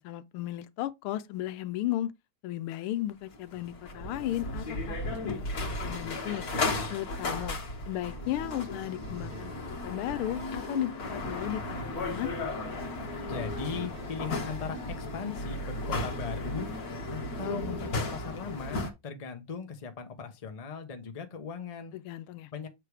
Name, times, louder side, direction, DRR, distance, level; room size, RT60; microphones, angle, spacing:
voice 1, 0.0-2.1 2.4-5.0 5.2-6.5 6.9-7.6 7.9-9.5 9.8-12.3 21.9-22.5, left 14 dB, 85° left, 1.5 m, -35 dB
sound 1, 3.3-18.9, left 2 dB, 45° left, 1.7 m, -35 dB
sound 2, 6.6-15.5, right 3 dB, 75° right, 4.1 m, -54 dB
voice 2, 13.3-16.7 17.1-21.9 22.5-22.7, left 5 dB, 30° left, 0.6 m, -38 dB
7.5 x 3.4 x 4.8 m
omnidirectional pair, 2.3 m